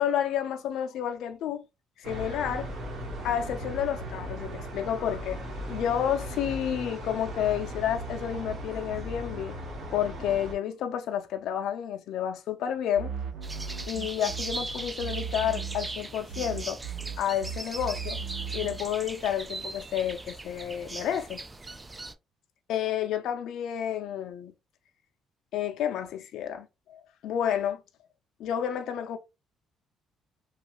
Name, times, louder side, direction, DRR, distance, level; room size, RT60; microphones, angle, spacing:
voice 1, 0.0-1.6 2.0-2.7 3.2-5.4 5.7-9.5 9.9-13.1 13.9-16.8 17.2-18.2 18.5-21.4 22.7-24.5 25.5-27.8 28.4-29.2, left 9 dB, 75° left, 0.4 m, -30 dB
sound 1, 2.0-10.5, equal, 50° right, 1.3 m, -37 dB
sound 2, 12.9-16.0 16.3-18.8, right 6 dB, 75° right, 0.7 m, -37 dB
sound 3, 13.4-22.1, right 2 dB, 15° right, 0.3 m, -39 dB
3.0 x 2.3 x 2.9 m
cardioid pair, 125°, 0 cm